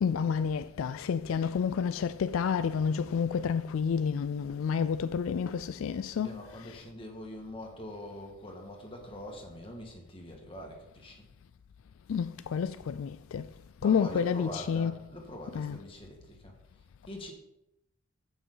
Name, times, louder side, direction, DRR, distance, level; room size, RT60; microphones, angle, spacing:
voice 1, 0.0-6.8 12.1-13.5 13.8-14.9 15.5-15.8, left 6 dB, 70° left, 0.3 m, -30 dB
voice 2, 6.1-11.3 13.8-17.3, left 1 dB, 25° left, 1.8 m, -44 dB
14.5 x 6.2 x 3.9 m
head